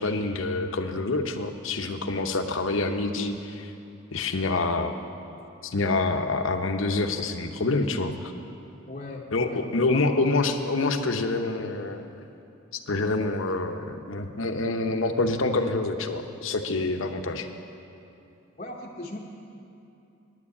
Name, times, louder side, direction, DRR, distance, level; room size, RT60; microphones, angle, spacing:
voice 1, 0.0-3.7 4.1-4.9 5.6-8.3 9.3-12.1 12.9-17.5, left 3 dB, 70° left, 6 dB, 0.8 m, -27 dB
voice 2, 8.9-10.0 18.6-19.2, left 2 dB, 35° left, -3 dB, 0.9 m, -39 dB
9.8 x 9.6 x 8.5 m, 2.8 s
head